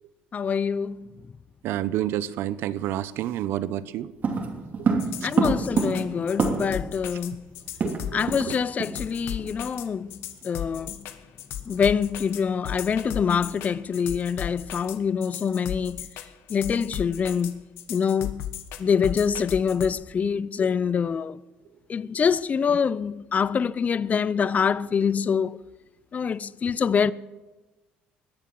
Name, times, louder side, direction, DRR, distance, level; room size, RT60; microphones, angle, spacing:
voice 1, 0.3-1.0 5.2-7.4 8.1-10.1 10.4-11.0 11.7-16.1 16.5-17.6 17.9-18.4 18.8-21.4 21.9-25.6 26.1-27.1, left 6 dB, 40° left, 0.5 m, -25 dB
voice 2, 1.6-4.1 4.9-5.3 7.8-8.5, right 12 dB, 70° right, 0.7 m, -30 dB
sound 1, 4.2-6.9 7.2-7.3 7.5-8.5 8.8-9.0 9.4-9.6, right 4 dB, 45° right, 2.8 m, -26 dB
sound 2, 5.0-19.9, left 10 dB, 75° left, 1.2 m, -35 dB
21.0 x 7.3 x 7.6 m
supercardioid pair, 80°, 4 cm